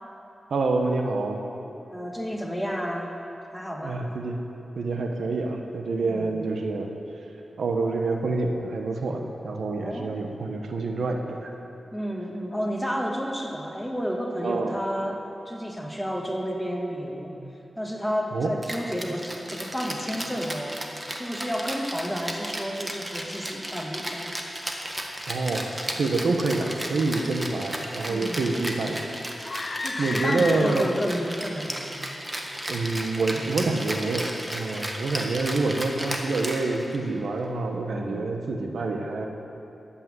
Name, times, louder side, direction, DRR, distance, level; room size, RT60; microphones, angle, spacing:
voice 1, 0.5-1.4 3.8-4.4 4.8-6.9 7.6-11.5 14.4-14.8 18.3-18.5 25.3-29.0 30.0-30.9 32.7-39.3, right 3 dB, 85° right, 3 dB, 1.1 m, -27 dB
voice 2, 1.9-3.2 3.5-4.0 6.0-6.4 9.8-10.2 11.9-17.4 17.8-24.3 28.1-28.4 29.8-31.9 37.9-38.3, equal, 5° left, 0 dB, 1.7 m, -31 dB
Rattle (instrument), 18.6-37.1, right 1 dB, 15° right, 1.5 m, -34 dB
sound 1, 29.4-31.2, left 3 dB, 45° left, 0.4 m, -33 dB
12.5 x 8.7 x 7.6 m, 3.0 s
wide cardioid pair, 75°, 0 cm